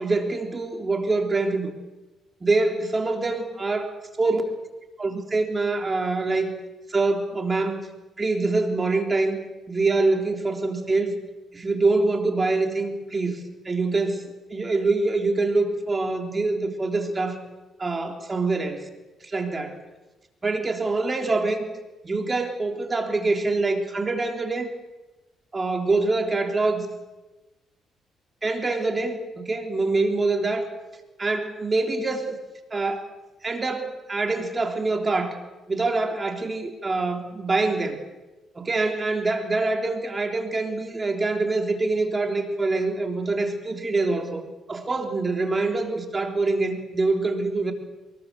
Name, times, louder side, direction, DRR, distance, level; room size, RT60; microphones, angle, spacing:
voice 1, 0.0-1.7 2.4-4.4 5.0-6.5 6.9-7.8 8.2-9.4 9.7-11.2 11.5-14.2 14.5-17.4 17.8-18.9 19.2-19.8 20.4-21.7 22.0-24.7 25.5-26.9 28.4-30.7 31.2-32.4 32.7-33.1 33.4-35.4 35.7-38.0 38.6-44.4 44.7-47.7, right 3 dB, 25° right, 3 dB, 3.6 m, -25 dB
24.0 x 21.0 x 7.0 m, 1.1 s
cardioid pair, 90°, 0 cm